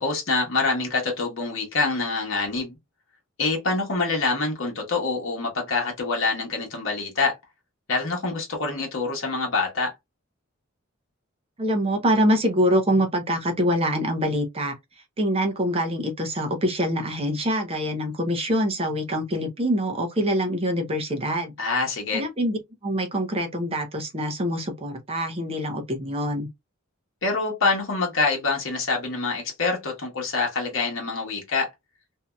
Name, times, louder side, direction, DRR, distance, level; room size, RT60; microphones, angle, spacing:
voice 1, 0.0-2.8 3.4-7.4 7.9-9.9 21.6-22.2 27.2-31.7, left 3 dB, 65° left, 1.0 m, -25 dB
voice 2, 11.6-14.7 15.2-21.5 22.1-26.5, equal, 30° right, 0.7 m, -25 dB
2.7 x 2.6 x 2.2 m
head